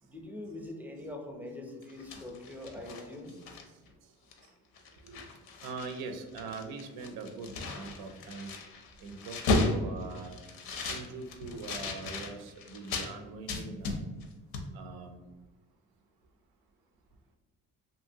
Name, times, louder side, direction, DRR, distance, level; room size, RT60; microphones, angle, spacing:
voice 1, 0.0-3.3, left 1 dB, 5° right, 2 dB, 0.5 m, -43 dB
sound 1, 1.8-3.9 4.3-4.5 4.7-6.0 6.3-13.1 13.5-14.3 14.5-14.7, left 3 dB, 85° left, 0.6 m, -35 dB
voice 2, 5.6-8.5 9.0-10.4 10.7-14.0 14.7-15.3, right 4 dB, 85° right, 6 dB, 0.5 m, -42 dB
2.7 x 2.7 x 2.7 m, 1.2 s
cardioid pair, 85°, 36 cm